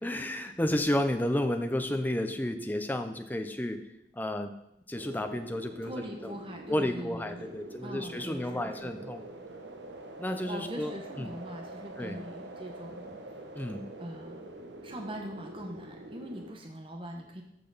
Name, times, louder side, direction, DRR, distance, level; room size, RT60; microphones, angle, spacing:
voice 1, 0.0-3.8 4.1-4.5 4.9-5.9 6.2-6.3 6.7-9.2 10.2-11.3 12.0-12.2 13.5-13.9, left 1 dB, 10° left, 6 dB, 0.7 m, -31 dB
sound 1, 4.9-16.5, right 2 dB, 80° right, 1.0 m, -45 dB
voice 2, 5.8-9.1 10.2-13.2 14.0-14.5 14.8-17.4, equal, 30° right, 2 dB, 1.0 m, -42 dB
13.5 x 5.8 x 4.1 m, 0.84 s
head